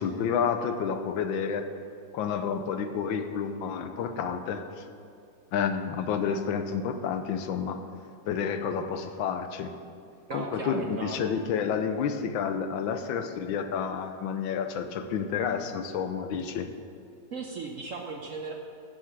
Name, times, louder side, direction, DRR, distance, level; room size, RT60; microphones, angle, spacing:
voice 1, 0.0-1.7 2.1-4.7 5.5-7.8 8.3-9.7 10.3-16.7, left 7 dB, 85° left, 8 dB, 1.5 m, -30 dB
voice 2, 10.3-11.3 17.3-18.5, right 4 dB, 60° right, 2 dB, 0.9 m, -36 dB
11.0 x 5.3 x 8.4 m, 2.3 s
omnidirectional pair, 2.1 m